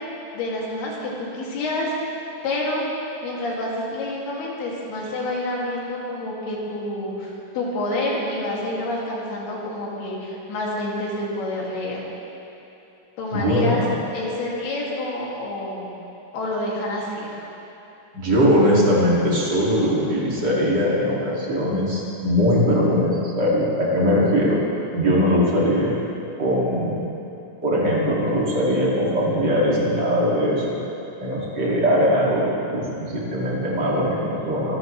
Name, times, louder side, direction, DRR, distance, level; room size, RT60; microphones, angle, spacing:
voice 1, 0.3-2.0 2.4-2.9 3.2-12.0 13.2-13.8 14.1-15.9 16.3-17.3, left 1 dB, 65° left, -4 dB, 4.2 m, -28 dB
voice 2, 13.3-13.9 18.1-24.6 24.9-25.9 26.4-27.0 27.6-30.8 31.2-34.8, equal, 30° right, -5 dB, 2.3 m, -20 dB
26.0 x 13.5 x 3.2 m, 3.0 s
omnidirectional pair, 4.9 m